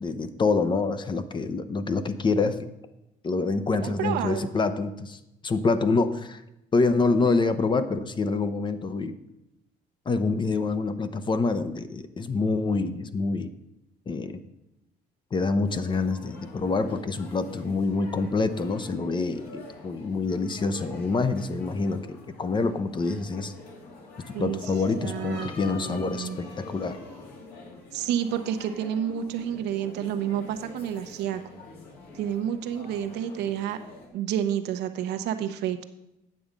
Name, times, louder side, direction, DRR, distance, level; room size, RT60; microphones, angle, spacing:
voice 1, 0.0-2.7 3.2-6.4 6.7-9.2 10.1-13.5 14.1-14.4 15.3-23.5 24.3-27.0, left 3 dB, 30° left, 11 dB, 0.7 m, -26 dB
voice 2, 3.8-4.5 24.3-24.7 25.0-26.4 27.9-31.4 32.1-33.8 34.1-35.8, right 10 dB, 80° right, 8 dB, 0.8 m, -30 dB
sound 1, 15.7-34.1, left 3 dB, 65° left, 2.2 m, -45 dB
9.4 x 7.0 x 5.1 m, 0.90 s
cardioid pair, 110°, 17 cm